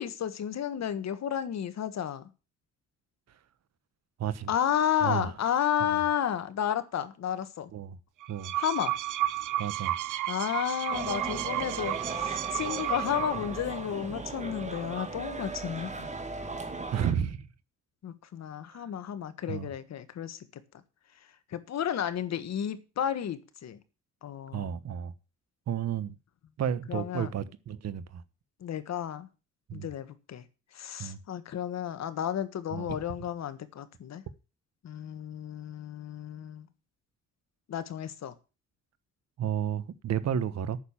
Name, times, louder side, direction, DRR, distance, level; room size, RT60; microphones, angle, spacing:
voice 1, 0.0-2.3 4.5-7.7 8.5-9.0 10.3-16.1 18.0-20.6 21.5-23.8 24.2-24.7 26.9-27.3 28.6-29.3 29.7-30.5 30.7-34.2 34.8-36.7 37.7-38.3, left 9 dB, 60° left, 1.5 m, -32 dB
voice 2, 4.2-4.5 5.0-5.3 5.8-6.0 7.7-8.0 8.3-8.5 9.6-10.0 16.9-17.5 18.7-18.9 19.5-19.7 24.5-25.1 25.7-26.1 26.6-28.2 29.7-29.9 31.0-31.2 32.7-33.0 39.4-40.8, right 9 dB, 60° right, 1.2 m, -32 dB
sound 1, 8.2-13.6, right 14 dB, 80° right, 1.0 m, -32 dB
sound 2, 10.9-17.1, right 3 dB, 25° right, 2.4 m, -37 dB
9.1 x 6.8 x 8.8 m
cardioid pair, 90°, 30 cm